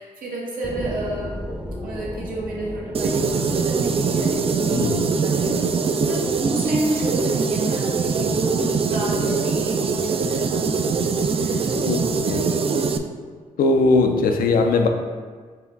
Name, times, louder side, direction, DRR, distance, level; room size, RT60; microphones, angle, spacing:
voice 1, 0.0-1.4 1.8-6.2 6.5-11.7, right 1 dB, 70° right, -4 dB, 1.2 m, -31 dB
sound 1, 0.6-11.6 12.1-12.2, equal, 10° right, 0.7 m, -38 dB
sound 2, 2.9-13.0, right 5 dB, 40° right, 0.4 m, -22 dB
voice 2, 4.7-5.1 11.8-12.5 13.6-14.9, left 3 dB, 75° left, 4 dB, 0.5 m, -20 dB
4.7 x 3.0 x 3.4 m, 1.5 s
supercardioid pair, 55°, 15 cm